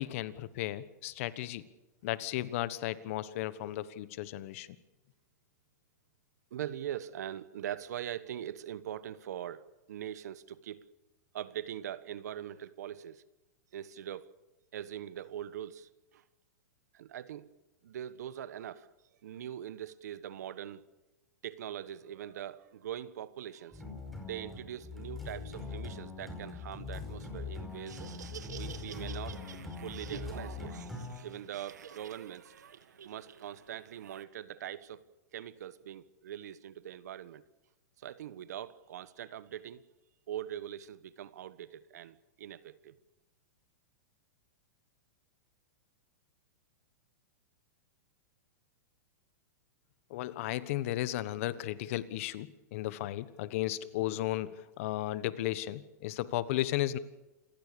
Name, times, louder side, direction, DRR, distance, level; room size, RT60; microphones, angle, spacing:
voice 1, 0.0-1.6 2.0-4.7 50.1-57.0, left 15 dB, 55° left, 1.3 m, -34 dB
voice 2, 6.5-10.9 11.3-13.2 13.7-14.3 14.7-16.2 16.9-17.5 17.8-18.9 19.2-20.8 21.4-23.8 24.2-28.0 28.5-30.8 31.2-32.5 33.0-35.0 35.3-37.4 38.0-39.8 40.3-43.0, right 11 dB, 75° right, 1.2 m, -42 dB
sound 1, 23.7-31.2, left 4 dB, ahead, 4.9 m, -42 dB
Laughter, 27.7-34.2, right 8 dB, 90° right, 1.9 m, -50 dB
27.0 x 16.0 x 6.9 m
hypercardioid pair, 140°, 9 cm